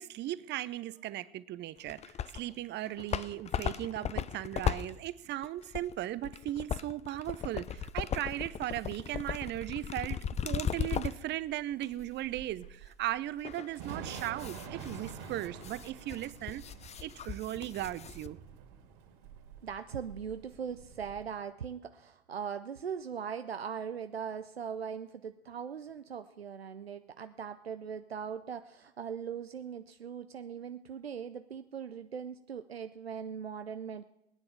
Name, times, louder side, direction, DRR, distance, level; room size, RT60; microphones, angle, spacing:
voice 1, 0.0-16.6 17.0-18.4, right 14 dB, 35° right, 0.7 m, -37 dB
sound 1, 1.9-2.5 2.9-11.3 11.8-11.9 13.4-18.3, left 8 dB, 20° left, 0.6 m, -37 dB
Thunder / Rain, 7.8-21.2, right 6 dB, 55° right, 3.4 m, -48 dB
voice 2, 19.6-34.0, right 7 dB, 85° right, 0.6 m, -40 dB
19.0 x 10.0 x 7.1 m
figure-of-eight pair, 70°, 30 cm